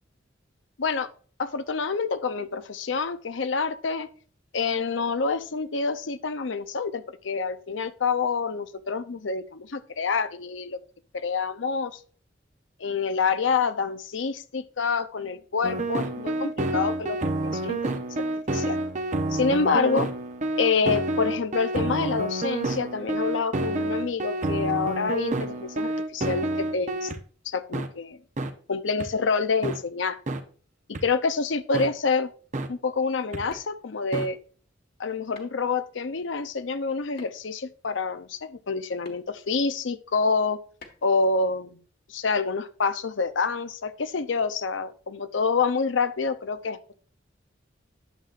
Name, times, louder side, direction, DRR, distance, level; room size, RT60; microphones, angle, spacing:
voice 1, 1.4-4.1 4.5-10.8 11.1-12.0 12.8-17.9 18.5-18.8 19.3-20.1 20.6-27.1 27.4-28.2 28.7-30.2 31.0-32.3 32.7-34.4 35.0-40.6 41.0-41.8 42.1-46.9, left 4 dB, 80° left, 11 dB, 0.7 m, -27 dB
sound 1, 15.6-27.2 27.7-27.9 28.4-28.5 29.0-29.1 29.6-29.8 30.3-30.4 30.9-31.0 31.7-31.9 32.5-32.7 33.3-33.4 34.1-34.3, right 2 dB, 40° right, 0.8 m, -28 dB
sound 2, 31.7-31.9 33.5-33.9 35.3-35.7 37.2-37.6 39.0-39.2 40.8-41.1, left 2 dB, 55° left, 1.6 m, -45 dB
11.0 x 7.4 x 2.5 m, 0.42 s
head